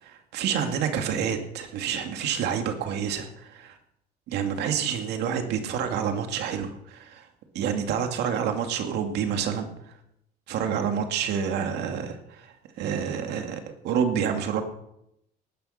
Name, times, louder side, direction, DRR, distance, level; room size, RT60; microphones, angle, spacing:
voice 1, 0.0-3.8 4.3-7.3 7.5-9.7 10.5-14.6, right 7 dB, 80° right, 5 dB, 2.3 m, -28 dB
18.5 x 9.9 x 6.6 m, 0.80 s
cardioid pair, 110°, 17 cm